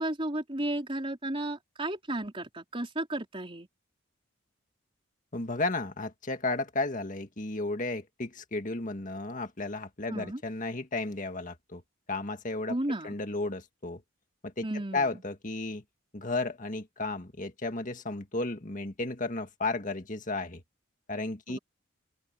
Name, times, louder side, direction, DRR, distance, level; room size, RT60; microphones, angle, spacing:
voice 1, 0.0-3.7 10.1-10.4 12.7-13.2 14.6-15.1 21.5-21.6, right 1 dB, 25° right, 4.0 m, -33 dB
voice 2, 5.3-11.8 12.1-12.8 13.0-14.0 14.4-14.7 14.9-15.8 16.1-20.6 21.1-21.6, left 2 dB, 40° left, 1.9 m, -33 dB
open air
head